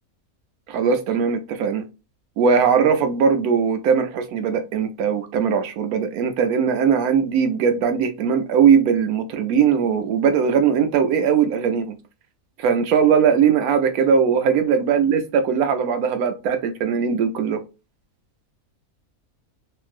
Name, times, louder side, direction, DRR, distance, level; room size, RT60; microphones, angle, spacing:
voice 1, 0.7-1.8 2.4-12.0 12.6-17.6, right 7 dB, 90° right, 1.1 m, -19 dB
2.8 x 2.6 x 2.4 m
omnidirectional pair, 1.5 m